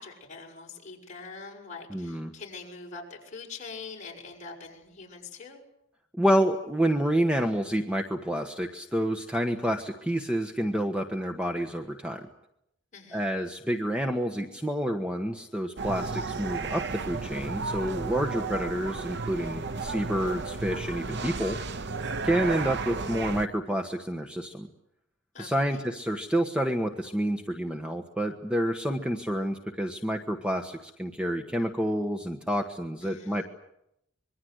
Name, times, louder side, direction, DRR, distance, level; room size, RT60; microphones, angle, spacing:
voice 1, 0.0-5.6 12.9-13.3 25.3-25.8 33.0-33.5, left 4 dB, 40° left, -1 dB, 6.7 m, -44 dB
voice 2, 1.9-2.3 6.2-12.3 13.1-21.6 22.2-24.7 25.4-33.4, equal, 5° right, 4 dB, 1.3 m, -28 dB
sound 1, 15.8-23.5, right 4 dB, 60° right, 0.9 m, -33 dB
26.0 x 22.5 x 8.0 m, 0.79 s
head